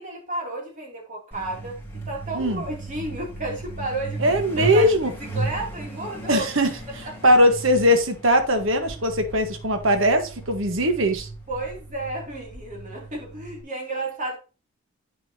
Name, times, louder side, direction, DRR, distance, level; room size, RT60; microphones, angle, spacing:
voice 1, 0.0-1.8 2.1-6.4 7.2-7.3 11.5-14.4, right 2 dB, 35° right, 2.8 m, -32 dB
Truck, 1.3-13.6, right 2 dB, 10° left, 3.0 m, -36 dB
voice 2, 4.2-5.1 6.3-6.7 7.2-11.3, equal, 60° right, 1.4 m, -20 dB
8.6 x 6.8 x 2.8 m
head